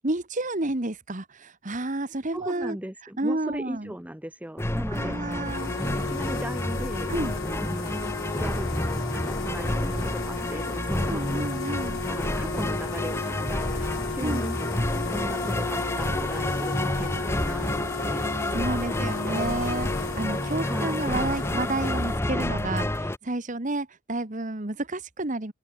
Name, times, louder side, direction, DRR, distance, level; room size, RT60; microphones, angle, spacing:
voice 1, 0.0-2.8 3.2-3.9 4.9-5.7 7.1-7.3 11.1-12.0 14.2-14.5 18.5-25.5, right 2 dB, 35° right, 1.4 m, -30 dB
voice 2, 2.3-5.4 5.7-7.1 7.6-14.6 15.1-18.3 20.6-21.2, equal, 5° right, 0.9 m, -38 dB
sound 1, 4.6-23.2, left 1 dB, 10° left, 1.0 m, -29 dB
sound 2, 5.4-22.2, left 5 dB, 70° left, 0.7 m, -35 dB
open air
head